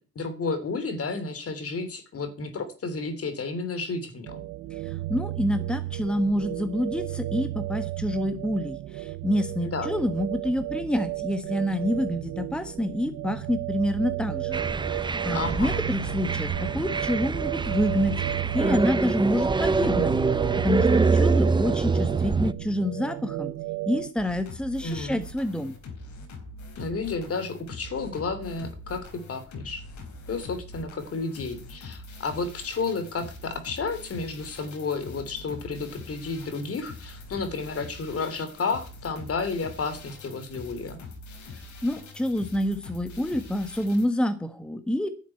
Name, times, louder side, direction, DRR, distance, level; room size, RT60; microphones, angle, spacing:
voice 1, 0.1-4.4 9.6-9.9 15.3-15.8 24.8-25.2 26.8-29.8 30.3-41.0, left 4 dB, 50° left, 10 dB, 3.2 m, -32 dB
sound 1, 4.2-24.1, right 17 dB, 80° right, 0.9 m, -33 dB
voice 2, 4.8-20.1 20.6-23.5 23.9-25.8 41.8-45.1, equal, 5° left, 9 dB, 1.5 m, -27 dB
sound 2, 14.5-22.5, right 4 dB, 15° right, 0.5 m, -25 dB
sound 3, 24.2-44.1, left 3 dB, 70° left, 4.1 m, -43 dB
11.0 x 7.4 x 9.1 m, 0.37 s
cardioid pair, 90°, 30 cm